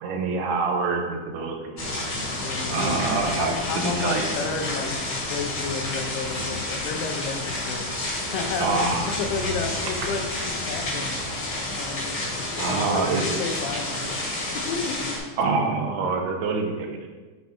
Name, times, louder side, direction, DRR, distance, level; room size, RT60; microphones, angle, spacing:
voice 1, 0.0-2.0 2.7-4.3 8.6-9.2 12.6-13.2 15.4-17.1, right 4 dB, 90° right, 3 dB, 2.7 m, -26 dB
sound 1, 1.8-15.2, left 2 dB, 50° left, 1.3 m, -30 dB
voice 2, 2.4-3.1 3.4-5.0 5.3-11.3 11.7-14.2 14.7-15.1, left 5 dB, 85° left, 4 dB, 2.8 m, -32 dB
7.8 x 4.5 x 4.2 m, 1.3 s
omnidirectional pair, 4.6 m